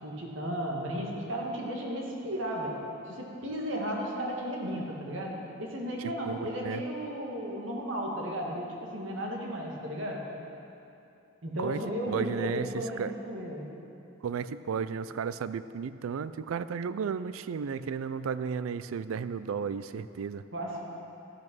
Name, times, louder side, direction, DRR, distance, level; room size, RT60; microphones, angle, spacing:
voice 1, 0.0-2.8 3.1-10.2 11.4-13.7 20.5-20.8, equal, 70° right, -1 dB, 1.7 m, -34 dB
voice 2, 6.3-6.8 11.6-11.8 12.1-12.7 13.0-13.1 14.2-20.4, right 6 dB, 90° right, 14 dB, 0.4 m, -33 dB
13.0 x 6.1 x 6.0 m, 2.7 s
head